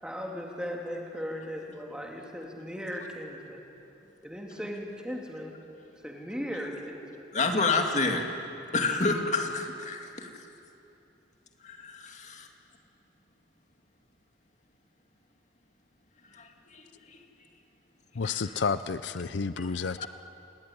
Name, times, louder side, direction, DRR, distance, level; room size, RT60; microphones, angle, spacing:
voice 1, 0.0-3.6 4.2-7.1, equal, 5° right, 0 dB, 3.1 m, -37 dB
voice 2, 7.3-8.3 8.7-10.4 11.6-12.5 16.3-17.2 18.2-18.5 19.6-19.7 20.0-20.1, left 3 dB, 40° left, 3 dB, 2.4 m, -29 dB
voice 3, 18.1-20.1, left 5 dB, 75° left, 13 dB, 0.6 m, -30 dB
28.5 x 19.5 x 9.8 m, 2.9 s
head